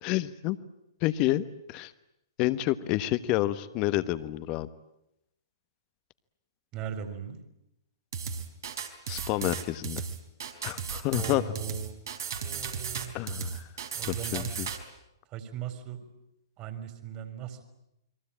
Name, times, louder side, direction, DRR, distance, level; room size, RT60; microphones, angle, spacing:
voice 1, 0.0-0.6 1.0-1.9 2.4-4.7 9.1-10.0 10.6-11.4 13.1-13.7 14.1-14.7, left 16 dB, 35° left, 13 dB, 1.3 m, -29 dB
voice 2, 6.7-7.4 11.2-12.1 12.3-13.1 13.9-14.5 15.3-16.0 16.6-17.6, right 9 dB, 30° right, 9 dB, 4.1 m, -39 dB
sound 1, 8.1-14.8, right 6 dB, 65° right, 4.0 m, -35 dB
30.0 x 22.5 x 8.8 m, 0.85 s
figure-of-eight pair, 115°, 2 cm